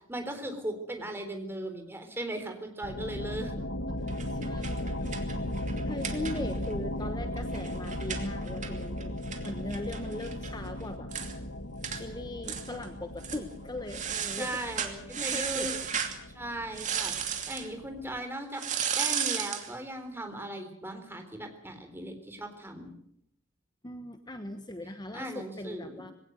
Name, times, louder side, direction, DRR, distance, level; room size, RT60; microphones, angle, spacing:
voice 1, 0.0-3.6 14.4-15.9 16.3-17.2 17.5-18.6 19.0-22.9 25.1-26.0, right 1 dB, 10° right, 5 dB, 3.8 m, -38 dB
sound 1, 2.8-18.2, left 1 dB, 70° left, 1.3 m, -37 dB
voice 2, 3.6-5.4 5.8-9.1 9.4-11.1 11.9-15.7 23.8-26.1, left 1 dB, 20° left, 8 dB, 1.2 m, -40 dB
sound 2, 4.1-6.7 7.0-7.1 7.4-10.5 10.8-10.9 11.1-11.3 11.8-12.0 12.4-12.9 13.2-13.4 13.9-16.2 16.7-17.7 18.6-19.7, right 8 dB, 40° right, 2.7 m, -34 dB
21.5 x 17.5 x 8.1 m, 0.71 s
head